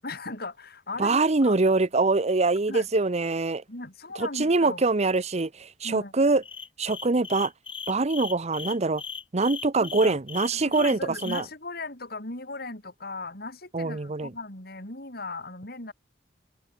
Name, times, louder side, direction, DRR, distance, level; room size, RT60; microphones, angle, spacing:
voice 1, 0.0-1.6 2.7-2.9 3.7-4.8 5.8-6.1 9.8-10.2 10.5-15.9, left 3 dB, 60° left, 7.0 m, -38 dB
voice 2, 1.0-3.6 4.2-6.4 6.8-7.5 7.9-9.0 9.3-11.4 13.7-14.3, right 3 dB, 40° right, 0.8 m, -24 dB
sound 1, 6.4-11.4, left 6 dB, 30° left, 2.2 m, -38 dB
head